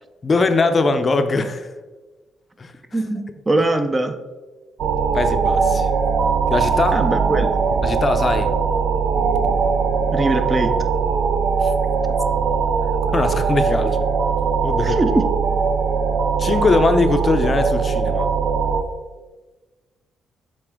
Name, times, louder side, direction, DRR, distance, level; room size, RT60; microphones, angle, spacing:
voice 1, 0.2-1.7 2.6-3.0 3.6-3.7 5.1-5.9 6.5-7.0 7.8-8.5 11.6-11.7 13.1-14.0 14.6-15.0 16.4-18.4, left 3 dB, 35° left, 8 dB, 0.5 m, -21 dB
voice 2, 2.9-4.2 6.9-7.6 10.1-10.8 14.8-15.3, right 2 dB, 25° right, 8 dB, 0.5 m, -21 dB
sound 1, 4.8-18.8, right 5 dB, 70° right, 0.6 m, -20 dB
7.5 x 4.2 x 3.6 m, 1.3 s
cardioid pair, 90°, 0 cm